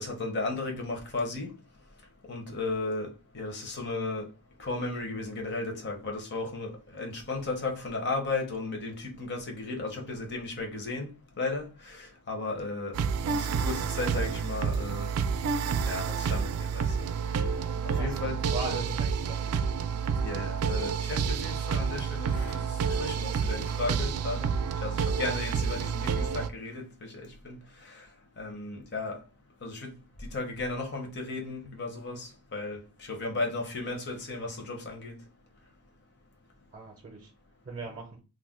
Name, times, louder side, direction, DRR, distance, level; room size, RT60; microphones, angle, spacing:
voice 1, 0.0-1.5 2.3-4.3 4.6-11.1 11.4-13.0 13.3-15.1 15.9-16.9 17.9-19.0 20.2-24.5 24.8-27.6 28.4-29.2 29.6-29.9 30.2-35.2, left 3 dB, 50° left, 0.8 m, -35 dB
sound 1, 12.9-26.5, right 6 dB, 90° right, 0.4 m, -29 dB
voice 2, 18.5-19.6 36.7-37.3 37.6-38.2, right 3 dB, 35° right, 0.5 m, -39 dB
2.4 x 2.2 x 3.6 m
head